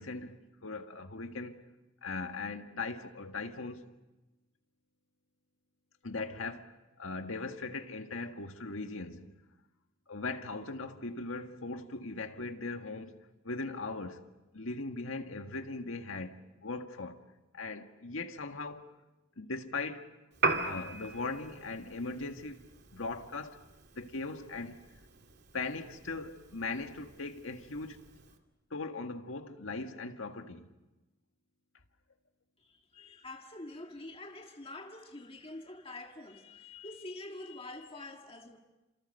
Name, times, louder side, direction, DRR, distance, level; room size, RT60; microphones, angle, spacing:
voice 1, 0.0-1.6 2.0-3.9 6.0-6.7 7.0-9.3 10.1-13.2 13.4-14.2 14.5-17.2 17.5-18.9 19.4-20.1 20.6-22.6 22.9-23.6 23.9-24.8 25.5-28.0 28.7-30.7, left 3 dB, 80° left, 1.7 m, -39 dB
Piano, 20.3-28.4, right 3 dB, 55° right, 2.4 m, -39 dB
voice 2, 32.6-38.6, left 2 dB, 30° left, 1.9 m, -46 dB
28.5 x 27.5 x 6.6 m
head